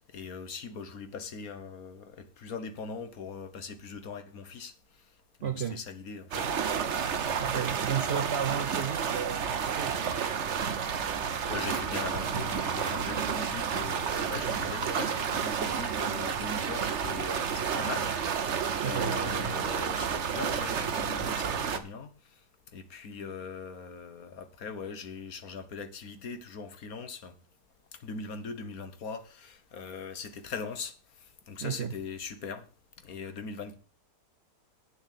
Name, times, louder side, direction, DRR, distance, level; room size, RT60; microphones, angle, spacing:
voice 1, 0.0-5.0 5.4-6.5 6.8-7.0 8.3-8.5 11.1-22.4 22.7-27.4 27.9-32.7 33.0-33.8, left 5 dB, 60° left, 1.6 m, -41 dB
voice 2, 5.4-5.8 6.5-6.6 7.4-10.7 18.8-19.2 31.6-31.9, right 8 dB, 65° right, 0.6 m, -34 dB
sound 1, 6.3-21.8, right 7 dB, 50° right, 1.1 m, -31 dB
8.7 x 7.2 x 6.5 m
omnidirectional pair, 1.8 m